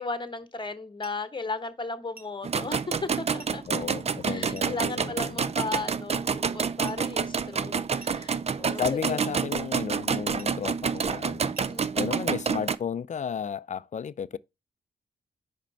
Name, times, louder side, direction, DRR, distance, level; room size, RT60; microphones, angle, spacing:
voice 1, 0.0-3.6 4.3-9.2 11.7-12.1, left 3 dB, 25° left, 1.1 m, -36 dB
sound 1, 1.0-1.3 2.2-2.4 3.4-3.6 4.5-4.8 5.7-6.0 6.9-7.1 8.0-8.3 9.2-9.4 10.4-10.6 11.5-11.8, right 3 dB, 55° right, 1.7 m, -50 dB
sound 2, 2.4-12.8, right 6 dB, 35° right, 0.5 m, -28 dB
voice 2, 3.7-5.5 8.8-11.5 11.9-14.4, left 7 dB, 40° left, 0.4 m, -33 dB
5.1 x 4.4 x 5.4 m
supercardioid pair, 50°, 18 cm